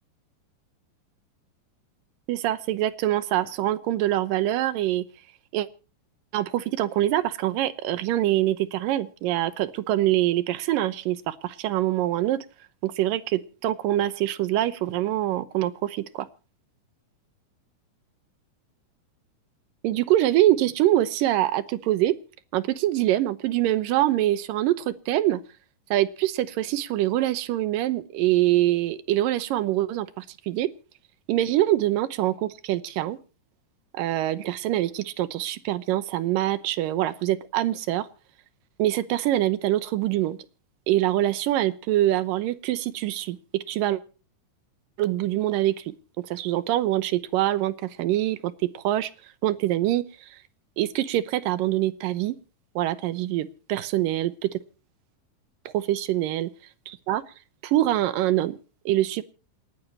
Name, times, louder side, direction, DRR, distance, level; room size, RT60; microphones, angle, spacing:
voice 1, 2.3-5.1 5.5-5.7 6.3-12.4 12.8-16.3 19.8-22.1 22.5-25.4 25.9-30.7 31.3-33.2 33.9-38.1 38.8-40.4 40.9-44.0 45.0-49.1 49.4-50.0 50.8-52.4 52.8-54.6 55.7-56.5 56.9-57.2 57.6-58.6 58.9-59.2, right 14 dB, 85° right, 13 dB, 2.6 m, -24 dB
28.5 x 10.5 x 2.9 m, 0.35 s
omnidirectional pair, 3.9 m